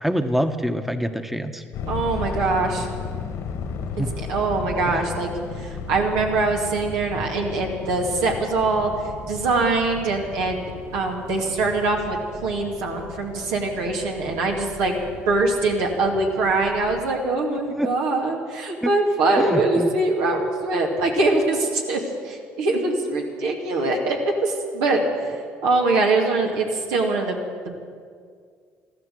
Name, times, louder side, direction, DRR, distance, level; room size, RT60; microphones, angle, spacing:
voice 1, 0.0-1.6 4.0-4.1 4.9-5.0 17.7-17.9 18.8-18.9 19.4-19.9, equal, 5° right, 8 dB, 1.1 m, -25 dB
sound 1, 1.7-17.0, left 5 dB, 70° left, 1.8 m, -35 dB
voice 2, 1.9-2.9 4.0-5.3 5.6-8.9 9.3-24.2 24.4-27.4 27.6-27.8, right 3 dB, 85° right, 0 dB, 2.4 m, -23 dB
14.5 x 13.0 x 7.8 m, 2.1 s
supercardioid pair, 65°, 5 cm